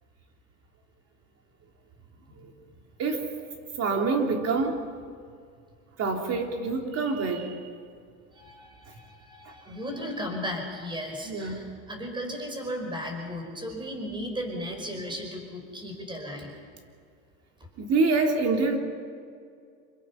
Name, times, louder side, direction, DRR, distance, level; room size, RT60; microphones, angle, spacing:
voice 1, 3.0-3.3 3.8-4.9 6.0-7.7 9.4-9.5 11.2-11.7 17.8-18.8, right 3 dB, 40° right, 3 dB, 3.3 m, -26 dB
voice 2, 8.3-16.5, equal, 10° right, 3 dB, 5.1 m, -35 dB
27.5 x 23.0 x 5.9 m, 2.2 s
supercardioid pair, 125°, 38 cm